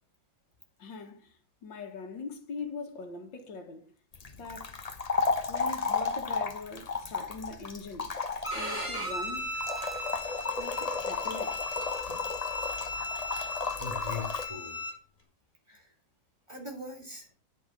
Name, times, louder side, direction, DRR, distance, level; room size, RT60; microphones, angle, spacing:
voice 1, 0.8-3.9 4.4-4.8 5.5-8.2 8.5-9.5 10.6-11.6, left 4 dB, 85° left, 2.5 m, -42 dB
sound 1, 4.1-14.5, left 4 dB, 30° left, 0.8 m, -33 dB
Bowed string instrument, 8.4-14.9, left 1 dB, 5° left, 4.5 m, -37 dB
voice 2, 13.8-14.8 15.7-15.9 16.5-17.3, left 3 dB, 15° right, 3.5 m, -40 dB
10.5 x 6.4 x 6.7 m
omnidirectional pair, 2.0 m